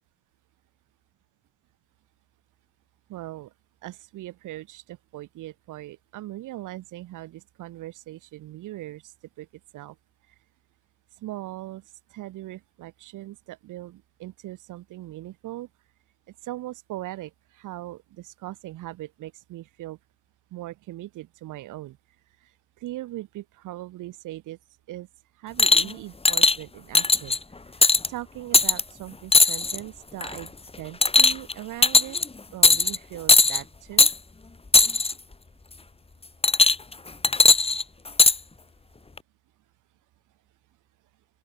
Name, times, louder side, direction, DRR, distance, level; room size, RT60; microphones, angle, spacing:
voice 1, 3.1-3.5 3.8-9.5 9.7-10.0 11.2-11.8 12.1-15.7 16.4-20.0 20.5-22.0 22.4-22.5 22.8-24.6 24.9-25.1 25.4-27.4 27.8-32.2 32.5-34.1, right 15 dB, 90° right, 6.0 m, -39 dB
sound 1, 25.6-25.9 26.3-26.6 26.9-27.4 27.8-28.1 28.5-28.8 29.3-29.8 30.2-30.5 31.0-31.5 31.8-32.2 32.6-33.0 33.3-33.6 34.0-34.1 34.7-35.1 36.4-36.9 37.2-38.4 39.2-39.3, left 3 dB, 20° left, 2.1 m, -17 dB
open air
cardioid pair, 90°, 30 cm